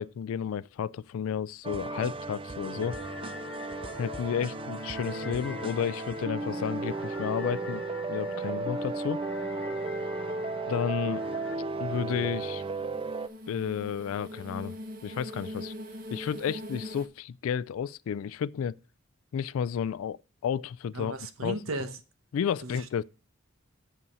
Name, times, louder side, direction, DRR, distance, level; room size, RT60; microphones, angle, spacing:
voice 1, 0.0-2.9 4.0-7.8 8.1-9.2 10.7-11.2 11.8-12.6 13.5-14.8 15.0-15.7 16.1-18.7 19.3-20.2 20.4-21.1 21.4-21.6 22.3-23.0, left 8 dB, 75° left, 0.3 m, -32 dB
sound 1, 1.6-13.3, right 3 dB, 25° right, 0.4 m, -35 dB
sound 2, 2.8-11.6, left 4 dB, 50° left, 0.8 m, -44 dB
sound 3, 11.6-17.1, equal, 40° right, 1.0 m, -42 dB
voice 2, 20.9-22.0 22.6-22.9, right 2 dB, 75° right, 1.0 m, -35 dB
7.0 x 5.5 x 5.3 m
head